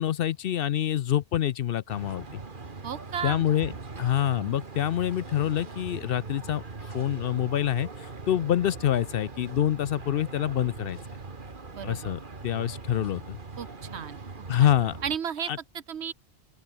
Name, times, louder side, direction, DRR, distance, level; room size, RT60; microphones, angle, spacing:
voice 1, 0.0-2.4 3.2-3.7 4.0-11.0 11.8-13.4 14.5-15.0 15.5-15.6, left 11 dB, 65° left, 0.7 m, -26 dB
sound 1, 1.9-15.2, right 3 dB, 45° right, 2.0 m, -41 dB
voice 2, 2.8-3.4 11.7-12.1 13.6-14.2 14.6-14.7 15.0-16.1, right 8 dB, 70° right, 1.3 m, -34 dB
open air
omnidirectional pair, 1.1 m